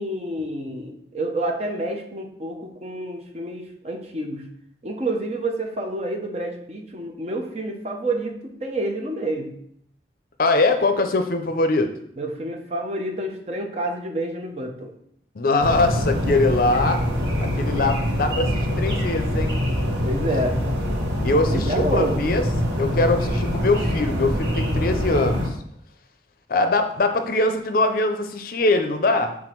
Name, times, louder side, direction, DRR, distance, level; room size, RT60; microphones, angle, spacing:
voice 1, 0.0-4.5 4.8-9.5 12.2-14.9 20.0-20.6 21.7-22.2, right 1 dB, 35° right, 2 dB, 0.9 m, -28 dB
voice 2, 10.4-11.9 15.4-17.0 17.4-19.6 21.2-22.4 22.8-25.5 26.5-29.3, left 2 dB, 55° left, 7 dB, 0.5 m, -22 dB
sound 1, 15.6-25.5, equal, 85° right, 1.7 m, -24 dB
6.1 x 3.7 x 4.5 m, 0.69 s
head